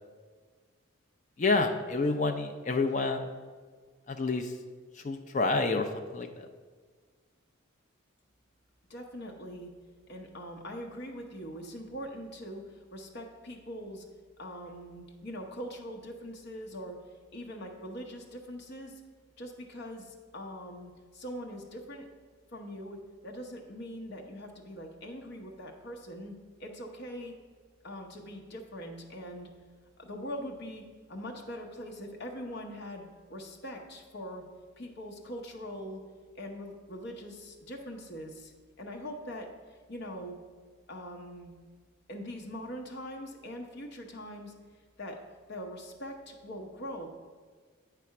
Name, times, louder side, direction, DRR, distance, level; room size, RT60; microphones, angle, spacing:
voice 1, 1.4-3.3 4.1-4.5 5.0-6.5, left 3 dB, 35° left, 5 dB, 0.4 m, -29 dB
voice 2, 8.9-9.7 10.1-14.1 14.4-17.0 17.3-19.0 19.4-22.1 22.5-26.3 26.6-27.3 27.8-29.5 30.0-30.8 31.1-34.4 34.8-36.0 36.4-38.5 38.8-40.4 40.9-41.5 42.1-44.5 45.0-45.2 45.5-47.1, equal, 50° left, 1 dB, 0.8 m, -42 dB
8.4 x 3.4 x 5.8 m, 1.5 s
head